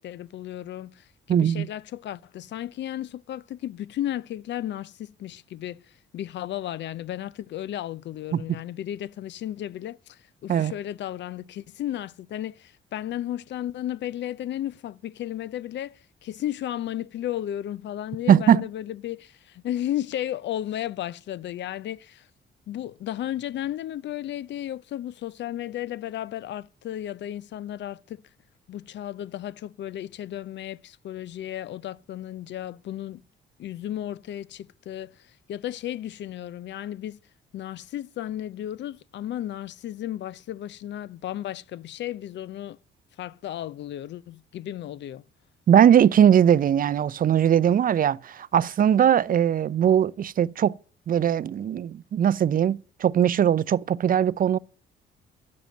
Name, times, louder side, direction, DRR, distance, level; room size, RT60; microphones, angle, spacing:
voice 1, 0.0-22.3 22.7-28.2 28.7-33.2 33.6-37.2 37.5-42.8 43.2-45.2, left 12 dB, 65° left, 0.5 m, -34 dB
voice 2, 1.3-1.7 8.3-8.4 10.5-10.7 18.3-18.6 45.7-50.8 51.1-54.6, right 9 dB, 45° right, 0.5 m, -20 dB
9.5 x 7.0 x 7.6 m
cardioid pair, 90°, 20 cm